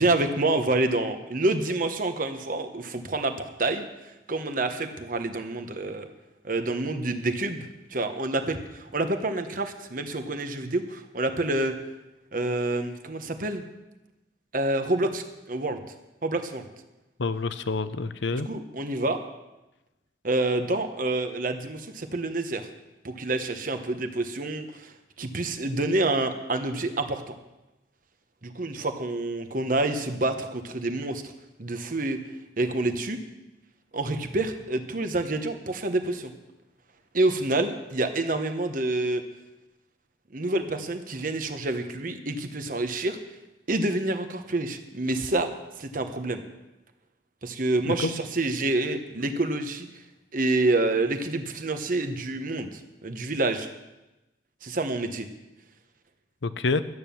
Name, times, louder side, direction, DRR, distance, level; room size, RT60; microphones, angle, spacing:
voice 1, 0.0-3.8 4.3-6.1 6.4-11.7 12.3-13.6 14.5-15.8 16.2-16.6 18.3-19.2 20.2-22.7 23.0-27.3 28.4-31.2 31.6-32.2 32.6-33.2 33.9-36.3 37.1-39.2 40.3-43.2 43.7-45.5 45.8-46.4 47.4-49.9 50.3-53.7 54.6-55.3, right 2 dB, 50° right, 7 dB, 1.1 m, -28 dB
voice 2, 17.2-18.5 47.9-48.1 56.4-56.8, left 3 dB, 80° left, 13 dB, 0.7 m, -27 dB
12.5 x 9.2 x 7.0 m, 1.0 s
head